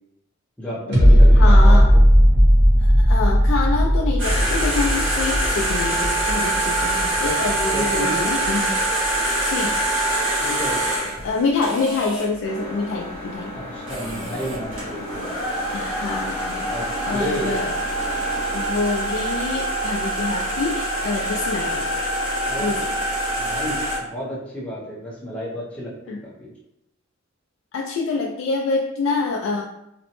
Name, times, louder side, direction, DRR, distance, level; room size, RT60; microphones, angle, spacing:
voice 1, 0.6-2.0 7.7-8.4 10.4-11.1 13.5-15.3 16.5-16.8 17.1-17.6 22.4-22.7 23.4-26.5, equal, 5° left, -7 dB, 0.7 m, -31 dB
sound 1, 0.9-8.0 8.4-8.5, equal, 55° right, 0.9 m, -15 dB
voice 2, 1.3-1.9 3.0-8.8 9.4-9.8 11.2-13.5 15.7-16.7 17.0-17.7 18.1-18.2 18.5-21.9 22.6-22.9 26.1-26.2 27.7-29.6, left 3 dB, 65° left, 0 dB, 0.3 m, -26 dB
sound 2, 4.2-12.3 13.6-13.7 13.9-24.0, right 1 dB, 75° right, 1.3 m, -25 dB
sound 3, 12.4-18.7, left 1 dB, 30° left, 1.0 m, -36 dB
2.9 x 2.0 x 2.9 m, 0.83 s
head